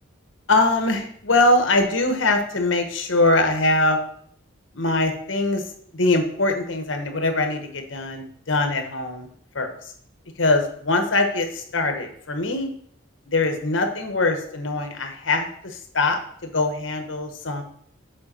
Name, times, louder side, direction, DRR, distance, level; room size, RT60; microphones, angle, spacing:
voice 1, 0.5-4.0 4.7-5.6 5.9-9.3 9.5-9.7 10.4-12.7 13.3-17.6, left 2 dB, 70° left, 5 dB, 1.1 m, -22 dB
7.6 x 4.6 x 4.3 m, 0.63 s
head